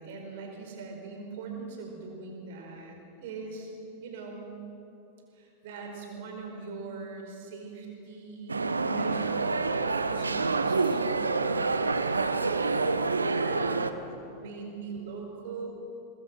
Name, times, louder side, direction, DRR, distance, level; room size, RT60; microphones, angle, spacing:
voice 1, 0.0-3.7 4.0-4.5 5.3-9.6 9.9-15.7, right 4 dB, 55° right, 1 dB, 4.8 m, -41 dB
sound 1, 8.5-13.9, right 3 dB, 80° right, 0.8 m, -27 dB
24.5 x 20.0 x 6.2 m, 2.9 s
figure-of-eight pair, 90°, 0 cm